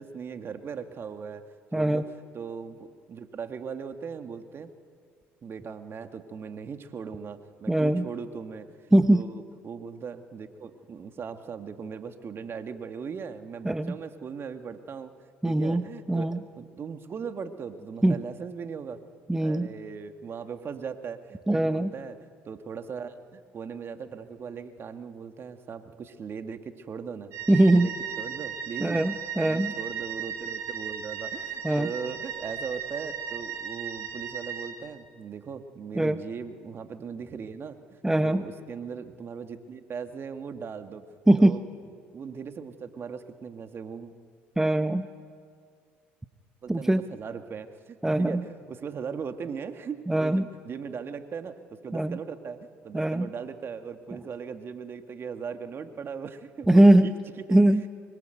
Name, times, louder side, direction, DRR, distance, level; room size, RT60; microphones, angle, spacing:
voice 1, 0.0-1.4 1.7-2.1 2.3-4.7 5.4-8.8 9.1-15.1 15.4-19.0 19.4-29.1 29.4-41.6 42.1-44.1 46.6-52.6 52.8-57.6, right 6 dB, 40° right, 7 dB, 2.0 m, -39 dB
voice 2, 1.7-2.0 7.7-8.0 8.9-9.2 13.6-13.9 15.4-15.8 16.1-16.4 18.0-18.2 19.3-19.7 21.5-21.9 27.5-27.9 28.8-29.7 31.6-31.9 36.0-36.2 38.0-38.4 41.3-41.6 44.6-45.1 46.7-47.0 48.0-48.4 50.1-50.4 51.9-52.2 52.9-53.3 56.7-57.1 57.5-57.9, right 1 dB, 10° right, 10 dB, 1.0 m, -21 dB
sound 1, 27.3-34.7, right 8 dB, 55° right, 4.6 m, -36 dB
24.5 x 22.5 x 9.3 m, 2.1 s
hypercardioid pair, 70°, 6 cm